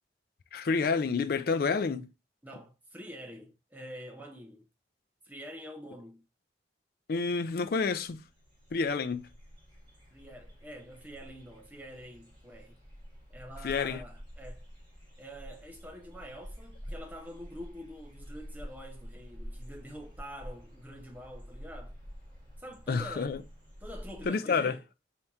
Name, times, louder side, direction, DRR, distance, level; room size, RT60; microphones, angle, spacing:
voice 1, 0.5-2.1 7.1-8.2 8.7-9.3 13.6-14.0 22.9-23.4 24.2-24.7, left 4 dB, 55° left, 0.4 m, -29 dB
voice 2, 2.4-4.6 5.2-6.2 10.1-12.8 13.3-14.7 15.2-22.0 22.6-23.5 23.8-24.9, equal, 10° right, 0.8 m, -46 dB
sound 1, 7.5-7.6 7.7-24.3, equal, 25° right, 1.4 m, -48 dB
4.4 x 2.9 x 3.5 m
head